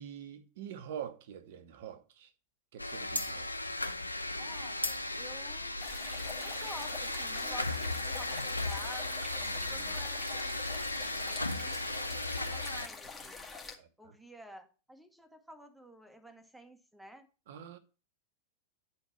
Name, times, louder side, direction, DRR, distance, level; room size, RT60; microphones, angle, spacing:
voice 1, 0.0-2.3 2.7-3.7 9.4-10.0 13.8-14.1 17.5-17.8, right 9 dB, 55° right, 0.9 m, -46 dB
sound 1, 2.8-12.9, left 2 dB, 85° left, 0.5 m, -36 dB
sound 2, 3.1-8.2, left 1 dB, 85° right, 1.1 m, -42 dB
voice 2, 4.4-5.8 6.2-9.3 9.7-10.6 11.0-13.5 14.0-17.3, equal, 5° right, 1.1 m, -51 dB
sound 3, 5.8-13.8, left 4 dB, 15° left, 1.6 m, -46 dB
9.6 x 4.5 x 4.3 m
figure-of-eight pair, 90°, 0 cm